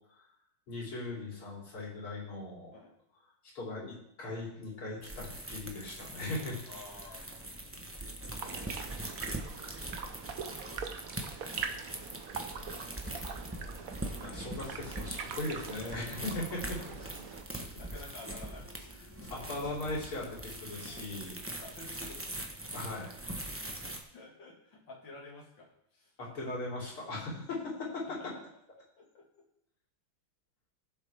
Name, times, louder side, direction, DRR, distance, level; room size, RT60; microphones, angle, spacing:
voice 1, 0.7-2.7 3.5-6.6 14.2-16.8 19.3-21.4 22.7-23.1 26.2-28.3, left 2 dB, 75° left, -5 dB, 4.3 m, -38 dB
sound 1, 5.0-24.0, right 1 dB, 20° right, 0.3 m, -42 dB
voice 2, 6.7-7.9 9.0-9.7 16.2-16.4 16.8-18.7 21.6-22.3 23.5-23.6 24.1-26.1 28.2-28.3 29.0-29.5, left 2 dB, 60° left, -2 dB, 2.9 m, -52 dB
sound 2, 8.4-17.4, right 6 dB, 55° right, 1.0 m, -43 dB
sound 3, 14.4-21.3, left 2 dB, 30° left, 1.8 m, -55 dB
16.0 x 7.5 x 3.5 m, 0.74 s
omnidirectional pair, 2.4 m